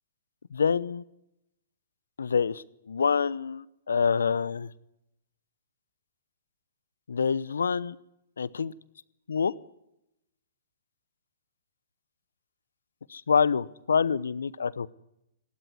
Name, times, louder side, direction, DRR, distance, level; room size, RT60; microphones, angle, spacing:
voice 1, 0.5-1.0 2.2-4.7 7.1-8.0 8.4-8.7 9.3-9.5 13.1-14.9, left 6 dB, 75° left, 19 dB, 0.9 m, -26 dB
20.5 x 17.5 x 9.6 m, 0.83 s
figure-of-eight pair, 115°, 0 cm